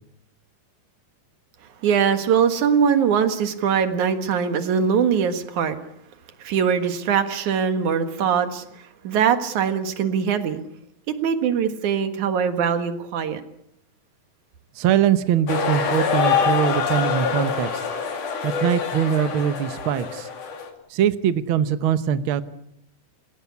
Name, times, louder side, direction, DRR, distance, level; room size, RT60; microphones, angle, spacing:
voice 1, 1.8-5.8 6.4-8.6 9.0-10.6 11.1-13.4, right 7 dB, 65° right, 8 dB, 2.9 m, -22 dB
voice 2, 14.8-17.8 18.4-20.3 20.9-22.4, right 9 dB, 85° right, 12 dB, 1.1 m, -22 dB
sound 1, 15.5-20.7, left 6 dB, 65° left, 4.1 m, -25 dB
29.0 x 17.0 x 8.4 m, 0.77 s
omnidirectional pair, 3.9 m